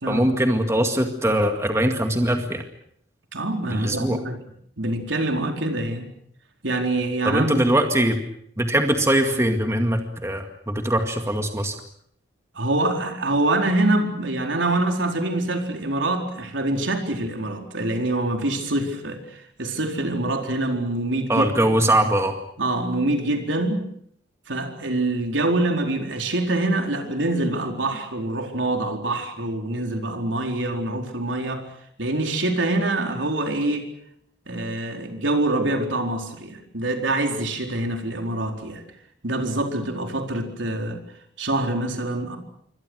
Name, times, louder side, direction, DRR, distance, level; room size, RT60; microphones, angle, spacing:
voice 1, 0.1-2.6 3.7-4.2 7.2-8.2 8.6-11.8 21.3-22.4, right 1 dB, 15° right, 5 dB, 2.1 m, -21 dB
voice 2, 3.3-4.4 4.8-6.1 6.6-7.6 12.5-21.5 22.6-23.9 24.5-31.7 32.0-33.9 34.5-38.8 39.2-41.0 41.4-42.4, right 2 dB, 80° right, 4 dB, 4.4 m, -25 dB
27.5 x 24.5 x 6.4 m, 0.66 s
head